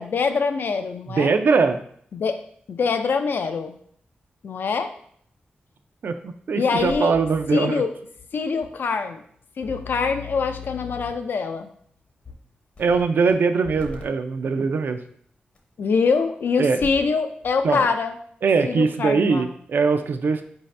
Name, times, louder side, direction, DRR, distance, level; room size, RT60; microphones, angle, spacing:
voice 1, 0.0-1.3 2.1-2.4 2.7-3.8 4.4-4.9 6.6-7.1 7.5-7.9 8.3-9.2 9.6-11.7 15.8-18.1 18.7-19.5, left 5 dB, 70° left, 8 dB, 0.4 m, -24 dB
voice 2, 1.1-1.8 6.0-7.8 12.8-15.0 16.6-16.8 17.6-17.9 18.4-20.4, right 4 dB, 70° right, 8 dB, 0.4 m, -21 dB
sound 1, 6.8-7.5 8.2-8.3 8.6-8.7 9.6-11.3 12.3-12.4 12.8-13.3 13.6-14.0 15.6-15.7 16.6-17.1 17.4-17.6, left 6 dB, 40° left, 0.7 m, -38 dB
4.8 x 2.7 x 3.2 m, 0.63 s
wide cardioid pair, 110°, 4 cm